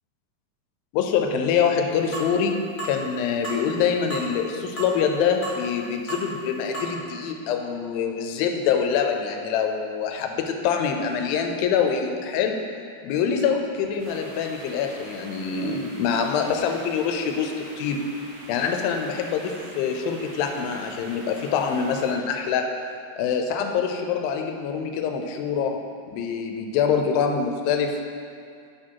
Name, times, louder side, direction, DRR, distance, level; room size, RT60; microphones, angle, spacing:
voice 1, 0.9-12.6 13.0-18.0 18.5-22.7 23.2-25.8 26.1-28.0, left 6 dB, 90° left, 4 dB, 2.4 m, -25 dB
sound 1, 2.1-2.3 2.8-3.0 3.4-3.6 4.1-4.3 4.8-4.9 5.4-5.6 6.1-6.3 6.7-6.9, right 2 dB, 55° left, 0.5 m, -33 dB
sound 2, 14.0-22.1, right 1 dB, 60° right, 2.4 m, -44 dB
9.9 x 4.3 x 4.5 m, 2.3 s
omnidirectional pair, 4.1 m